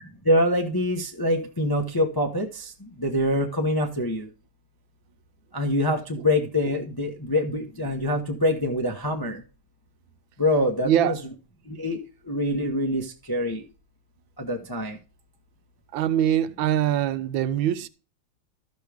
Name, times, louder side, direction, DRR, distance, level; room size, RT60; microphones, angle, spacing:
voice 1, 0.2-2.7 3.0-4.3 5.5-9.4 10.4-11.2 11.7-12.0 12.3-13.6 14.4-15.0, left 1 dB, 25° left, 0.5 m, -25 dB
voice 2, 10.8-11.2 15.9-17.9, right 11 dB, 75° right, 1.3 m, -23 dB
13.0 x 6.3 x 3.4 m
omnidirectional pair, 2.2 m